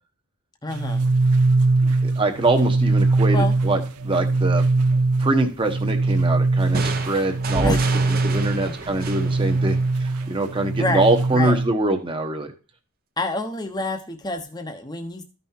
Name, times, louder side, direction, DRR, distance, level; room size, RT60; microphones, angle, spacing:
voice 1, 0.6-1.1 3.3-3.6 7.6-7.9 8.6-8.7 10.8-11.1 11.3-11.6 13.2-15.2, left 2 dB, 20° left, 5 dB, 0.9 m, -27 dB
sound 1, 0.7-11.7, right 3 dB, 90° right, 0.7 m, -21 dB
voice 2, 2.0-4.6 5.2-7.8 8.2-12.5, right 2 dB, 25° right, 4 dB, 1.1 m, -24 dB
sound 2, 6.7-10.4, right 2 dB, 40° right, 0.9 m, -31 dB
14.0 x 5.6 x 2.8 m, 0.34 s
head